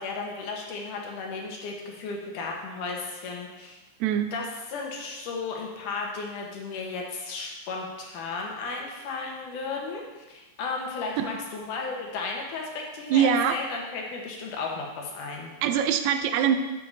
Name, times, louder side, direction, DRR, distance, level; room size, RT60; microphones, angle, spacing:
voice 1, 0.0-3.8 4.3-15.5, left 4 dB, 90° left, 0 dB, 2.8 m, -34 dB
voice 2, 13.1-13.6 15.6-16.6, right 8 dB, 75° right, 7 dB, 1.9 m, -23 dB
12.0 x 6.8 x 2.7 m, 1.2 s
omnidirectional pair, 3.5 m